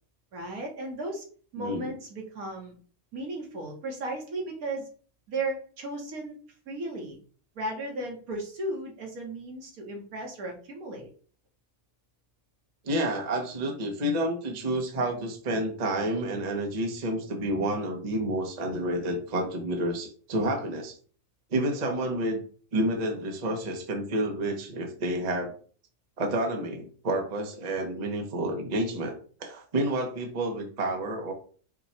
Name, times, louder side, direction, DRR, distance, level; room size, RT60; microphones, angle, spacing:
voice 1, 0.3-1.2 1.5-2.7 3.1-4.9 5.3-6.4 6.7-7.2 7.5-11.1, right 2 dB, 70° right, 1 dB, 1.6 m, -35 dB
voice 2, 1.6-1.9 12.8-20.9 21.5-22.4 22.7-25.5 26.2-29.1 29.4-31.3, right 1 dB, 35° right, 2 dB, 0.7 m, -29 dB
4.6 x 2.3 x 4.1 m, 0.42 s
omnidirectional pair, 1.6 m